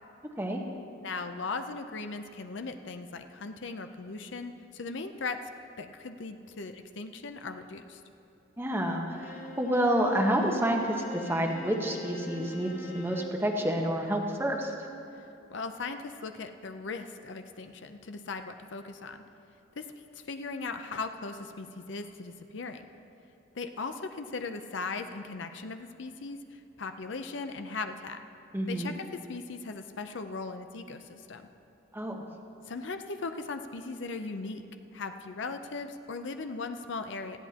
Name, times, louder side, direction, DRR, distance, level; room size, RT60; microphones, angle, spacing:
voice 1, 1.0-5.4 5.8-8.0 15.5-19.2 19.8-19.9 20.1-22.8 23.5-28.2 28.7-31.5 32.7-34.6 34.9-37.4, left 4 dB, 65° left, 8 dB, 0.6 m, -38 dB
voice 2, 8.6-10.8 11.1-14.7 28.5-28.9 31.9-32.2, right 1 dB, 10° right, 1 dB, 1.1 m, -29 dB
Bowed string instrument, 9.1-13.5, left 1 dB, 40° left, 1.0 m, -44 dB
19.0 x 14.5 x 2.9 m, 2.8 s
head